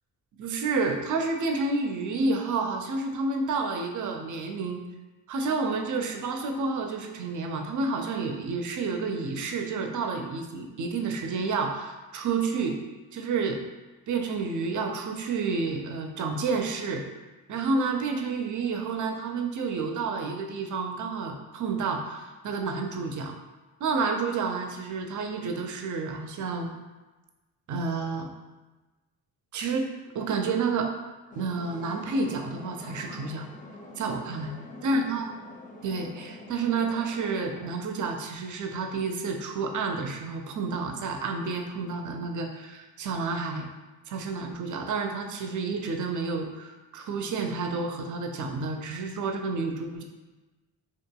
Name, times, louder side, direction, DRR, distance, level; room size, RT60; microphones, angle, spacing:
voice 1, 0.4-4.8 5.3-12.8 13.1-13.6 14.1-17.0 17.5-23.3 23.8-26.7 27.7-28.3 29.5-30.9 31.4-33.5 34.0-34.5 34.8-35.3 35.8-43.7 44.1-50.0, right 4 dB, 45° right, 4 dB, 0.5 m, -30 dB
Subway Paris, 31.3-37.7, left 2 dB, 20° left, 0.4 m, -44 dB
2.7 x 2.4 x 2.2 m, 1.2 s
hypercardioid pair, 45°, 46 cm